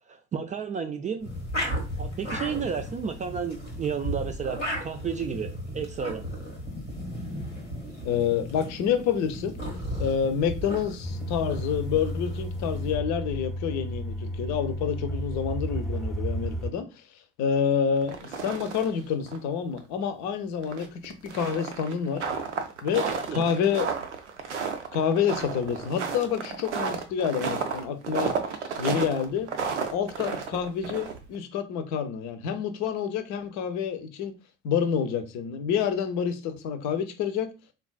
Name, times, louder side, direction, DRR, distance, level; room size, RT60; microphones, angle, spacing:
voice 1, 0.1-1.3 2.0-5.5 5.7-6.3 23.0-23.4, right 6 dB, 20° right, 0.3 m, -32 dB
sound 1, 1.2-13.0, equal, 90° left, 1.0 m, -35 dB
voice 2, 8.0-9.5 10.0-16.9 17.4-22.2 22.8-23.9 24.9-28.3 28.8-29.5 29.9-34.3 34.6-37.5, left 7 dB, 55° left, 0.7 m, -28 dB
sound 2, 11.0-16.7, equal, ahead, 0.7 m, -33 dB
sound 3, 18.0-19.0 19.3-19.4 19.8-19.9 20.6-31.4, right 5 dB, 85° right, 0.5 m, -32 dB
3.7 x 2.3 x 2.3 m
figure-of-eight pair, 55°, 35 cm